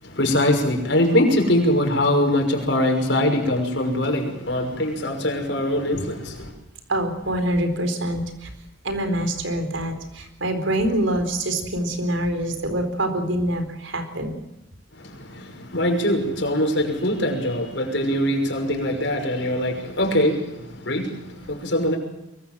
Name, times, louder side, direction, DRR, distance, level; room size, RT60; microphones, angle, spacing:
voice 1, 0.0-6.5 14.9-22.0, left 1 dB, 65° left, 3 dB, 6.0 m, -22 dB
voice 2, 6.9-8.5 8.8-14.4, right 1 dB, 75° right, 7 dB, 4.4 m, -25 dB
23.5 x 22.5 x 7.7 m, 0.90 s
head